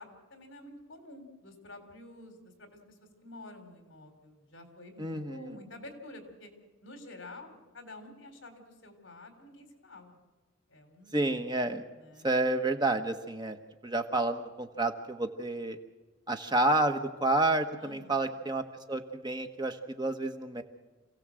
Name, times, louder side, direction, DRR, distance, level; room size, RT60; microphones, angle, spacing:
voice 1, 0.0-3.0 3.2-6.5 6.8-10.2 10.7-11.3 12.0-12.3 17.8-18.3, left 2 dB, 65° left, 6 dB, 3.8 m, -49 dB
voice 2, 5.0-5.5 11.1-11.8 12.2-15.8 16.3-20.6, right 2 dB, 20° right, 6 dB, 1.3 m, -30 dB
27.5 x 16.0 x 7.7 m, 1.2 s
head